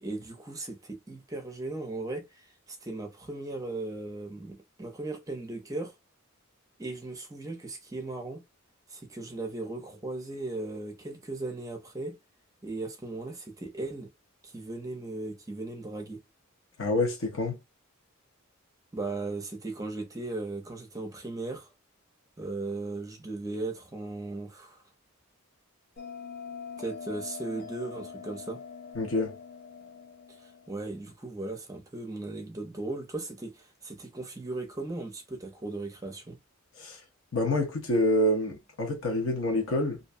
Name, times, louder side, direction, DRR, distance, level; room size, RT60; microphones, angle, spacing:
voice 1, 0.0-5.9 6.8-8.4 8.9-12.2 12.6-14.1 14.4-16.2 18.9-21.7 22.4-24.8 26.8-28.6 30.4-36.4, right 2 dB, 15° right, 0.6 m, -37 dB
voice 2, 16.8-17.6 28.9-29.4 36.8-37.0 37.3-40.0, left 1 dB, 65° left, 0.9 m, -27 dB
Bell, 26.0-31.0, left 6 dB, 45° left, 0.6 m, -43 dB
2.6 x 2.2 x 2.6 m
head